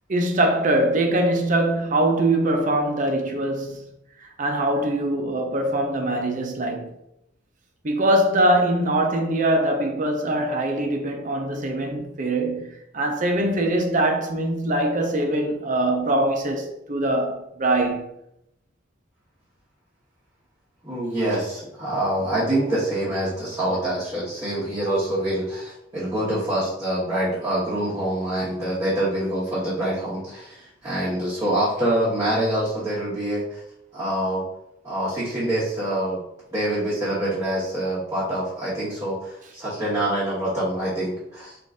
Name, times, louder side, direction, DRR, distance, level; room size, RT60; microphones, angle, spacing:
voice 1, 0.1-3.8 4.4-6.9 7.8-18.1, right 1 dB, 45° right, 0.6 m, -22 dB
voice 2, 20.8-33.6 33.9-34.4 34.8-36.2 36.5-41.6, right 1 dB, 20° right, 1.2 m, -25 dB
3.8 x 2.6 x 3.6 m
head